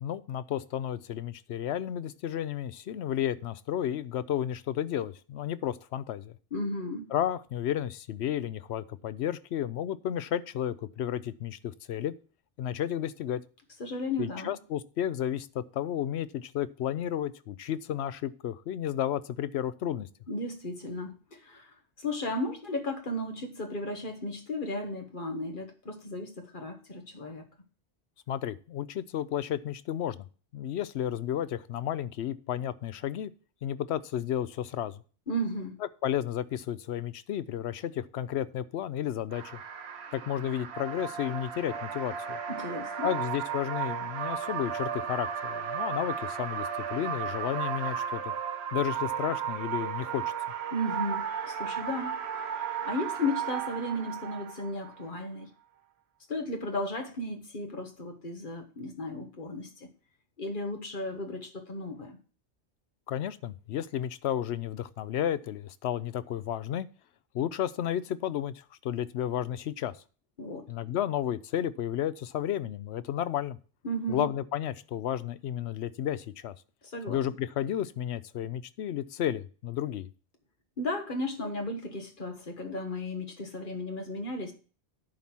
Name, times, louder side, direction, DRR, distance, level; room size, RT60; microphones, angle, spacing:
voice 1, 0.0-6.3 7.1-12.1 12.6-13.4 14.2-20.1 28.3-30.2 30.5-33.3 33.6-35.0 36.0-39.6 40.1-42.4 43.0-48.3 48.7-50.2 63.1-66.9 67.3-69.9 70.7-73.6 74.1-76.5 77.1-80.1, left 10 dB, 75° left, 15 dB, 0.8 m, -32 dB
voice 2, 6.5-7.1 13.8-14.5 20.3-27.4 35.3-35.8 42.5-43.1 50.7-52.1 52.5-55.5 56.3-59.9 60.4-62.2 70.4-70.7 73.8-74.3 76.8-77.2 80.8-84.5, left 1 dB, 50° left, 4 dB, 1.6 m, -35 dB
sound 1, 39.3-55.1, right 8 dB, 70° right, 1.1 m, -34 dB
10.5 x 4.3 x 6.1 m, 0.38 s
omnidirectional pair, 1.2 m